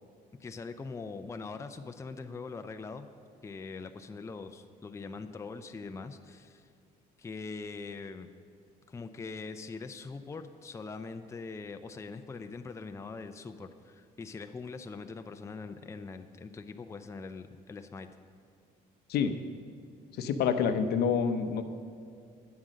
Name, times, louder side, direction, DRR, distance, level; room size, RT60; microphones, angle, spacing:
voice 1, 0.4-3.1 3.4-6.7 7.2-8.3 8.9-18.1, left 4 dB, 15° left, 7 dB, 0.5 m, -42 dB
voice 2, 20.2-21.6, left 6 dB, 70° left, 9 dB, 0.8 m, -27 dB
9.5 x 7.6 x 6.3 m, 2.4 s
cardioid pair, 110°, 17 cm